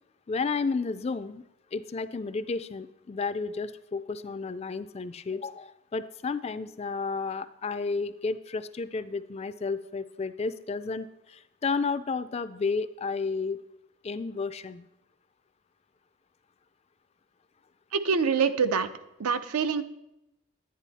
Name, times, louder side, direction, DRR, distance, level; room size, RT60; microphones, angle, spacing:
voice 1, 0.3-1.4 1.7-13.6 14.0-14.9, left 4 dB, 30° left, 13 dB, 0.3 m, -32 dB
voice 2, 17.9-18.9 19.2-19.8, right 5 dB, 85° right, 10 dB, 0.7 m, -25 dB
10.5 x 9.8 x 4.1 m, 0.89 s
head